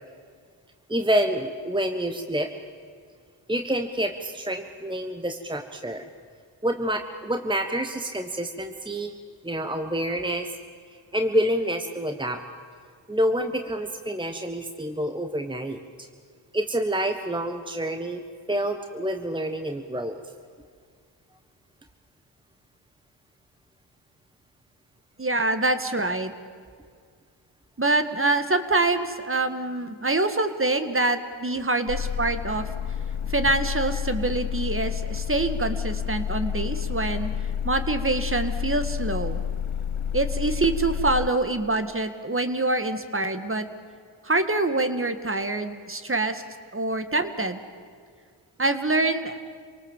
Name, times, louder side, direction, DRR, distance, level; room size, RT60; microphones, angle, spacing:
voice 1, 0.9-2.5 3.5-6.1 6.6-9.1 9.4-10.5 11.1-12.4 13.1-16.1 16.5-18.2 18.5-20.2, equal, 10° right, 6 dB, 1.4 m, -27 dB
voice 2, 25.2-26.3 27.8-32.7 33.2-37.3 37.6-39.4 40.1-43.7 44.2-46.4 46.7-47.6 48.6-49.4, right 2 dB, 25° right, 9 dB, 1.9 m, -25 dB
sound 1, 31.9-41.3, left 8 dB, 85° left, 1.0 m, -29 dB
27.5 x 18.5 x 7.5 m, 2.1 s
cardioid pair, 60°, 48 cm